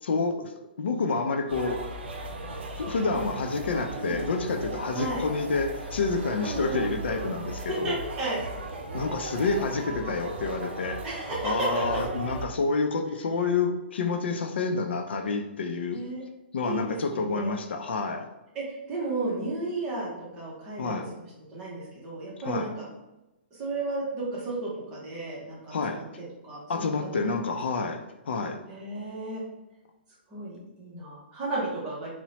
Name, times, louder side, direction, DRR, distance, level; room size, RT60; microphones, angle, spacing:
voice 1, 0.0-0.5 0.8-1.9 2.8-8.0 8.9-11.0 11.4-16.0 16.5-18.3 20.8-21.1 22.4-22.7 25.7-26.0 26.7-28.6, left 4 dB, 70° left, 5 dB, 0.3 m, -28 dB
sound 1, 1.5-12.5, right 2 dB, 75° right, 0.6 m, -36 dB
voice 2, 4.9-5.2 6.4-6.8 7.7-8.4 11.0-11.8 15.9-16.2 16.6-17.5 18.5-20.9 21.5-22.9 23.6-27.1 28.7-29.4 30.3-32.1, right 2 dB, 15° right, -6 dB, 0.5 m, -33 dB
2.9 x 2.0 x 2.8 m, 0.98 s
hypercardioid pair, 180°, 6 cm